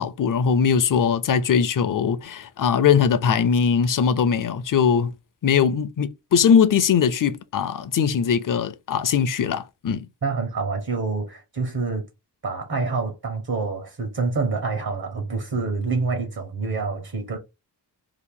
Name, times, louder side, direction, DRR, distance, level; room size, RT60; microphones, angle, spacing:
voice 1, 0.0-5.1 5.4-10.1, left 7 dB, 50° left, 0.5 m, -20 dB
voice 2, 10.2-12.0 12.4-17.4, right 4 dB, 60° right, 1.2 m, -27 dB
2.9 x 2.5 x 3.6 m
wide cardioid pair, 105°, 41 cm